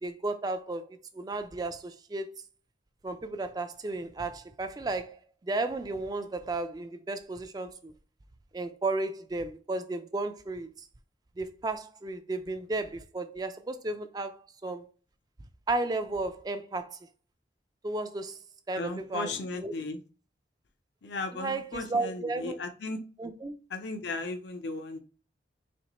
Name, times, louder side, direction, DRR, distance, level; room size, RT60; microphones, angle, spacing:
voice 1, 0.0-2.4 3.0-5.2 5.4-7.9 8.5-10.7 11.4-14.9 15.7-17.0 17.8-18.4 18.7-19.3 19.6-19.7 21.3-22.6 23.2-23.6, right 2 dB, 20° right, 0.3 m, -34 dB
voice 2, 18.7-20.0 21.0-23.0 23.7-25.0, left 3 dB, 70° left, 0.6 m, -36 dB
4.3 x 3.0 x 2.9 m
head